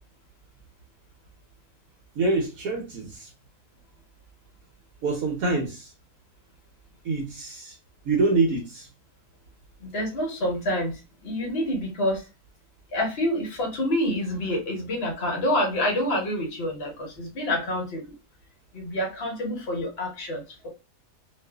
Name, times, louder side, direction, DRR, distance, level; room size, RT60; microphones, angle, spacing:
voice 1, 2.2-3.3 5.0-5.9 7.0-7.7 8.0-8.9, right 3 dB, 70° right, 1 dB, 1.0 m, -25 dB
voice 2, 9.8-12.3 12.9-18.0 18.7-20.7, left 1 dB, 45° left, 1 dB, 1.0 m, -27 dB
2.6 x 2.4 x 2.2 m, 0.28 s
omnidirectional pair, 1.7 m